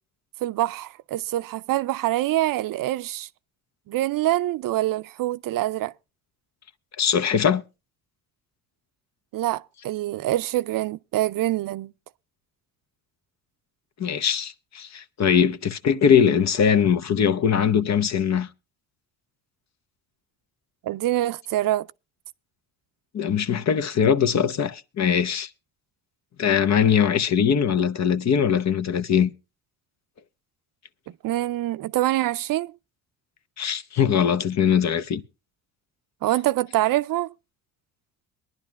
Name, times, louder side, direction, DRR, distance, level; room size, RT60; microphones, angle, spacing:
voice 1, 0.4-3.3 3.9-5.9 9.3-11.9 20.8-21.9 31.2-32.7 36.2-37.3, right 15 dB, 65° right, 0.5 m, -25 dB
voice 2, 7.0-7.6 14.0-18.5 23.1-25.5 26.4-29.3 33.6-35.2, left 7 dB, 50° left, 0.9 m, -21 dB
23.0 x 11.0 x 2.3 m
cardioid pair, 85°, 35 cm